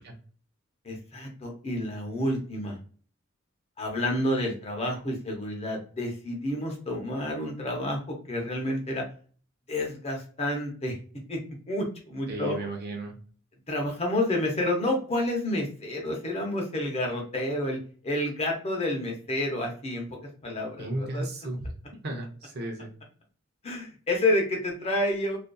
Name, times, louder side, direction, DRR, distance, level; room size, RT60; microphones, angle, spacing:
voice 1, 0.8-2.8 3.8-9.0 9.7-10.9 11.3-11.4 11.7-12.5 13.7-17.8 18.0-21.2 23.6-25.4, left 1 dB, 30° left, 1 dB, 0.7 m, -29 dB
voice 2, 12.3-13.2 20.8-21.7 22.0-22.9, right 2 dB, 50° right, 3 dB, 0.6 m, -34 dB
2.5 x 2.4 x 2.2 m, 0.42 s
head